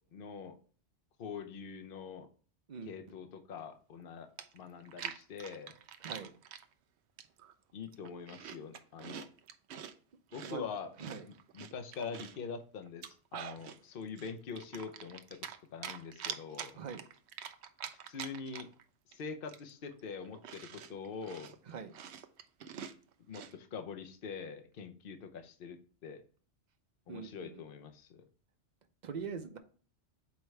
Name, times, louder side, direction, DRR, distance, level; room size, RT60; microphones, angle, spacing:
voice 1, 0.1-0.6 1.2-2.3 2.9-4.3 4.5-5.7 7.7-9.3 10.3-10.9 11.3-15.2 15.7-16.8 17.9-18.7 19.1-21.6 23.3-26.2 27.1-28.2, left 5 dB, 55° left, 7 dB, 0.9 m, -44 dB
Chewing mastication, 4.0-4.1 4.4-6.6 7.2-7.5 7.9-9.9 10.3-12.4 12.9-13.8 14.2-15.6 15.8-18.8 19.1-19.2 19.5-23.5, right 8 dB, 75° right, 0.9 m, -45 dB
voice 2, 6.0-6.3 10.4-10.6 11.0-11.2 16.8-17.0 21.7-21.9 27.1-27.6 29.0-29.6, right 6 dB, 45° right, 7 dB, 0.7 m, -42 dB
7.1 x 4.5 x 3.2 m, 0.42 s
omnidirectional pair, 1.2 m